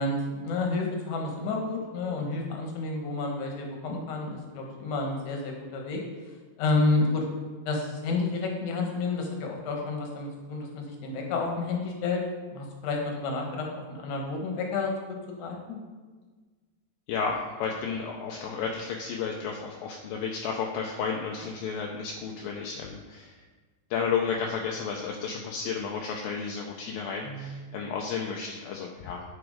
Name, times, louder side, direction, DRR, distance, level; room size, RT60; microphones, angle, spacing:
voice 1, 0.0-6.0 6.6-7.2 7.7-12.2 12.5-14.9 15.4-15.8 27.2-27.5, left 3 dB, 60° left, 1 dB, 2.2 m, -30 dB
voice 2, 17.1-23.4 23.9-29.2, left 6 dB, 80° left, 0 dB, 2.1 m, -32 dB
11.5 x 4.8 x 5.0 m, 1.4 s
omnidirectional pair, 4.9 m